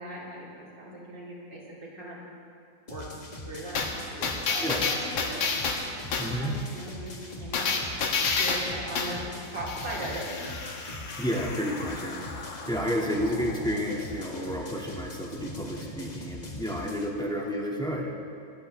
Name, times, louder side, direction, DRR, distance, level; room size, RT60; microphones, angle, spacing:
voice 1, 0.0-2.2 2.9-3.1 3.4-5.4 6.2-7.7 8.4-9.2 9.5-10.4 17.1-17.3, right 1 dB, 70° right, -5 dB, 4.3 m, -39 dB
sound 1, 2.9-17.1, left 1 dB, 25° left, 1.3 m, -42 dB
sound 2, 3.7-6.4 7.5-9.2 9.7-14.9 15.2-15.3, left 4 dB, 90° left, 2.2 m, -31 dB
voice 2, 6.2-6.5 11.1-18.1, equal, ahead, -3 dB, 2.0 m, -31 dB
25.0 x 15.5 x 3.4 m, 2.7 s
omnidirectional pair, 2.0 m